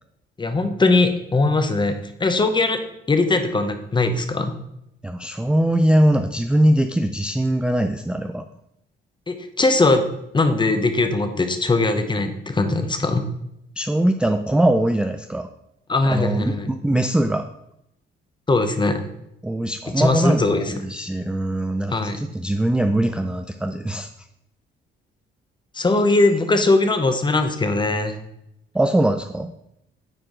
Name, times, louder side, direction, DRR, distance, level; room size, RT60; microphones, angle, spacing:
voice 1, 0.4-2.8 3.1-4.6 9.3-10.0 10.3-13.2 15.9-16.7 18.5-19.0 20.0-20.7 21.9-22.2 25.7-28.2, left 3 dB, 25° left, 7 dB, 0.9 m, -20 dB
voice 2, 5.0-8.4 13.8-15.5 16.1-17.4 19.4-24.1 28.7-29.5, right 1 dB, 5° right, 7 dB, 0.4 m, -21 dB
8.9 x 4.5 x 3.9 m, 0.81 s
cardioid pair, 90°, 20 cm